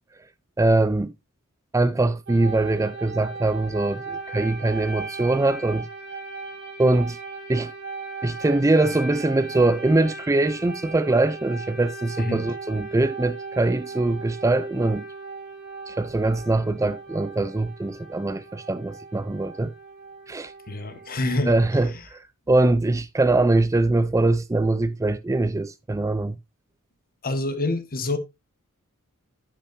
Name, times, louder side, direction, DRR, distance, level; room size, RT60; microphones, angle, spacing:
voice 1, 0.6-1.1 1.7-5.9 6.8-7.2 7.5-7.7 8.2-15.1 15.9-19.7 20.3-20.5 21.5-26.4, right 2 dB, 15° right, 0.4 m, -22 dB
sound 1, 2.3-21.8, right 3 dB, 55° right, 2.2 m, -38 dB
voice 2, 20.7-21.6 27.2-28.2, left 2 dB, 40° left, 1.5 m, -26 dB
10.0 x 8.8 x 2.6 m
head